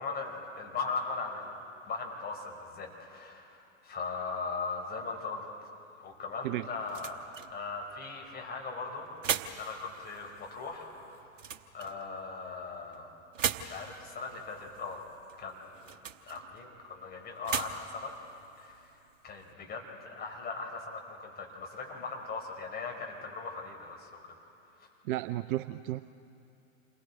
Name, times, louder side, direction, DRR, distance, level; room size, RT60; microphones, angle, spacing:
voice 1, 0.0-1.5 1.8-5.4 6.0-9.1 9.5-11.4 11.7-13.1 13.6-15.0 15.4-15.9 16.2-18.1 18.6-18.9 19.2-24.4 24.8-24.9, left 4 dB, 25° left, 0 dB, 4.7 m, -39 dB
sound 1, 6.0-19.5, right 8 dB, 70° right, 1.0 m, -41 dB
voice 2, 25.0-26.0, right 16 dB, 40° right, 13 dB, 0.5 m, -33 dB
28.5 x 22.0 x 4.2 m, 2.6 s
figure-of-eight pair, 90°, 39 cm